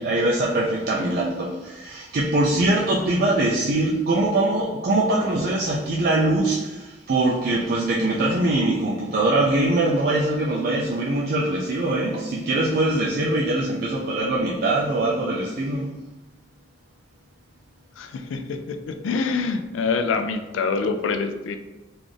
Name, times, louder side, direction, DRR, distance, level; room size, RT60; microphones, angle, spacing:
voice 1, 0.0-15.9, right 2 dB, 50° right, -4 dB, 0.4 m, -22 dB
voice 2, 18.0-21.6, left 4 dB, 85° left, 7 dB, 0.3 m, -26 dB
3.9 x 2.4 x 3.2 m, 1.1 s
head